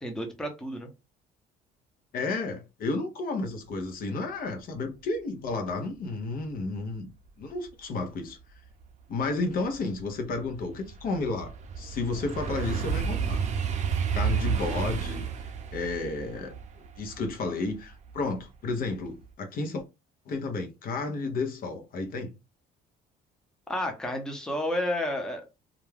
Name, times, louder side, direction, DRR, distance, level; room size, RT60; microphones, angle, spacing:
voice 1, 0.0-0.9 23.7-25.6, left 1 dB, 5° left, 0.7 m, -31 dB
voice 2, 2.1-7.1 7.4-8.4 9.1-13.4 14.1-15.3 15.7-19.8 20.3-22.3, left 3 dB, 60° left, 0.7 m, -32 dB
sound 1, 8.8-8.9 9.4-18.4 18.8-19.2, right 7 dB, 45° right, 0.5 m, -31 dB
2.4 x 2.2 x 3.2 m
cardioid pair, 110°, 17 cm